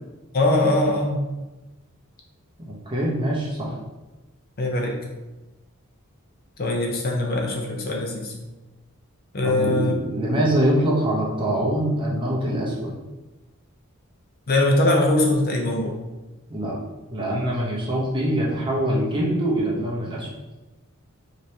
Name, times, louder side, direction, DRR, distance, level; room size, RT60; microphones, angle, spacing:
voice 1, 0.3-1.2 4.6-5.0 6.6-8.3 9.3-9.9 14.5-16.0, left 1 dB, 45° left, 1 dB, 0.6 m, -21 dB
voice 2, 2.6-3.8 9.4-12.9 16.5-16.8 17.1-20.3, right 1 dB, 25° right, -4 dB, 0.9 m, -24 dB
5.1 x 3.1 x 2.8 m, 1.1 s
head